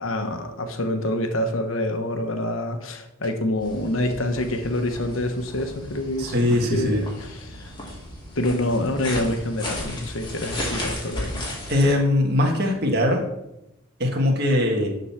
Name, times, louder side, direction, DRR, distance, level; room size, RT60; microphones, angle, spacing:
voice 1, 0.0-7.7 8.3-11.5, left 1 dB, 70° left, 6 dB, 1.1 m, -27 dB
sound 1, 3.6-11.9, left 1 dB, 20° left, 2.0 m, -35 dB
voice 2, 6.2-7.0 11.7-13.2 14.0-14.9, left 1 dB, 50° right, 1 dB, 1.6 m, -21 dB
11.5 x 4.0 x 5.8 m, 0.86 s
head